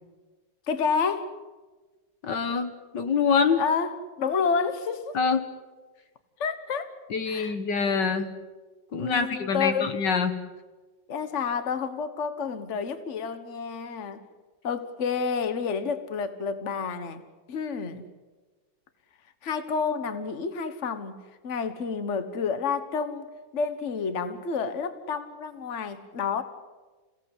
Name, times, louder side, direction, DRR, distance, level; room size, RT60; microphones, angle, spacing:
voice 1, 0.7-1.3 3.6-5.2 6.4-6.9 7.3-7.5 8.9-9.9 11.1-14.3 14.6-17.2 17.5-18.0 19.4-21.1 21.4-26.4, left 5 dB, 40° left, 10 dB, 1.6 m, -29 dB
voice 2, 2.2-3.6 5.1-5.5 7.1-8.3 8.9-10.4, left 5 dB, 65° left, 9 dB, 1.9 m, -25 dB
28.0 x 17.5 x 8.3 m, 1.3 s
omnidirectional pair, 2.1 m